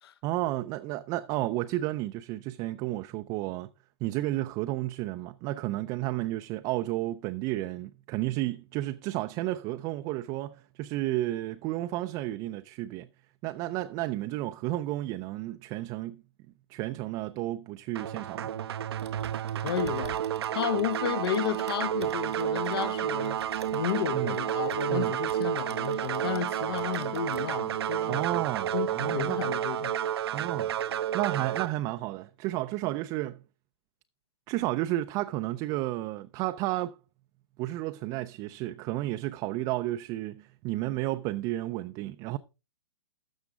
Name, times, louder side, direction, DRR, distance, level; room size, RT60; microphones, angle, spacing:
voice 1, 0.2-3.7 4.0-13.1 13.4-16.2 16.7-18.5 24.1-24.4 24.9-25.1 28.1-29.4 30.3-30.7 31.1-33.4 34.5-36.9 37.6-42.4, right 16 dB, 25° right, 0.4 m, -32 dB
sound 1, 18.0-31.7, right 10 dB, 70° right, 0.6 m, -31 dB
Typing, 18.9-26.5 26.8-27.6, right 6 dB, 90° right, 2.0 m, -49 dB
voice 2, 19.6-20.2 20.5-23.4 23.7-28.3 28.7-29.9, left 10 dB, 65° left, 0.9 m, -32 dB
12.5 x 7.0 x 3.7 m
hypercardioid pair, 145°, 14 cm